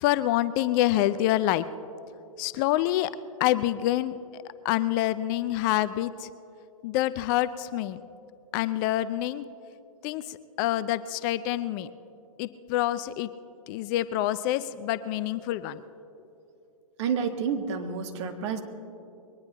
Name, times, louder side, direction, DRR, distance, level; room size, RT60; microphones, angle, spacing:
voice 1, 0.0-1.6 2.4-3.1 3.4-4.1 4.6-6.3 6.8-8.0 8.5-9.5 10.0-11.9 12.4-13.3 13.7-15.8, left 14 dB, 35° left, 14 dB, 0.5 m, -26 dB
voice 2, 17.0-18.6, right 6 dB, 50° right, 6 dB, 1.5 m, -29 dB
22.0 x 19.0 x 2.9 m, 2.8 s
figure-of-eight pair, 110°, 18 cm